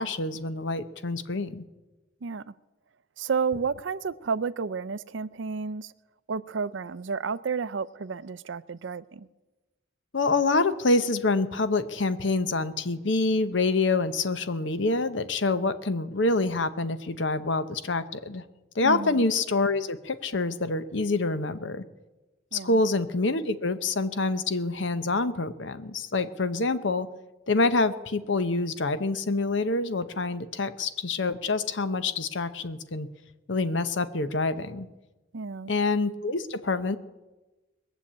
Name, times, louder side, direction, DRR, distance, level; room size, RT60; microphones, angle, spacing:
voice 1, 0.0-1.6 10.1-18.4 18.7-21.8 22.5-27.1 27.5-33.1 33.5-34.9 35.7-37.0, left 3 dB, 65° left, 0.9 m, -26 dB
voice 2, 2.2-2.5 3.2-5.9 6.3-9.3 18.8-19.2 22.5-22.8 35.3-35.7, right 5 dB, 70° right, 0.5 m, -31 dB
21.5 x 7.2 x 8.6 m
head